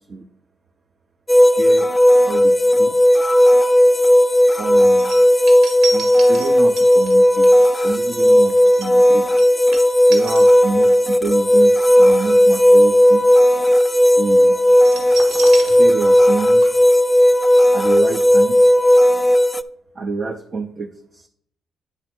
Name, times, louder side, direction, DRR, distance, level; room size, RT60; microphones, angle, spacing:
sound 1, 1.3-19.6, equal, 15° left, 0.3 m, -14 dB
voice 1, 1.3-1.9 2.2-3.0 4.6-5.1 5.9-9.3 10.1-13.3 14.2-14.6 15.6-16.7 17.7-18.6 19.9-21.3, right 4 dB, 40° right, 4 dB, 0.6 m, -28 dB
sound 2, 5.0-11.1 11.4-11.6 14.8-16.3 16.6-16.7, right 4 dB, 80° right, 2.0 m, -32 dB
9.8 x 3.3 x 5.9 m, 0.66 s
cardioid pair, 90°, 0 cm